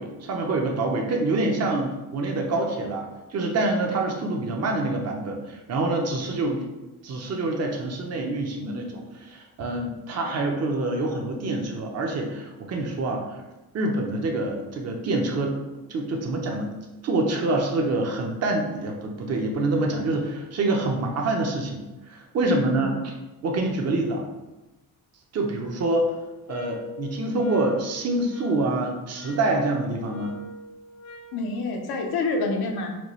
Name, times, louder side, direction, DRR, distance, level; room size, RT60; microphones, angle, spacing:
voice 1, 0.0-6.6 7.0-13.4 13.7-15.5 15.9-16.8 17.0-22.9 23.4-24.3 25.3-26.1 26.5-30.4, right 2 dB, 40° right, 1 dB, 0.7 m, -26 dB
voice 2, 10.1-10.6 22.4-23.0 31.3-33.0, left 3 dB, 75° left, 3 dB, 0.7 m, -28 dB
sound 1, 26.5-31.4, left 4 dB, 45° left, 0.4 m, -43 dB
4.4 x 2.3 x 3.1 m, 1.1 s
cardioid pair, 90°, 38 cm